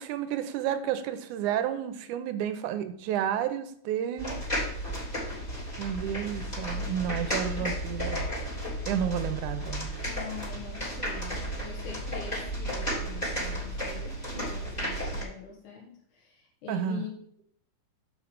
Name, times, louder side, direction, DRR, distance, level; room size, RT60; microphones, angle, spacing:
voice 1, 0.0-4.4 5.8-8.3 8.9-9.9 16.7-17.0, right 9 dB, 85° right, 10 dB, 2.1 m, -31 dB
sound 1, 4.2-15.2, equal, 15° left, 3.3 m, -33 dB
voice 2, 10.1-17.1, left 6 dB, 75° left, -2 dB, 2.7 m, -43 dB
7.1 x 5.3 x 5.1 m, 0.65 s
omnidirectional pair, 3.5 m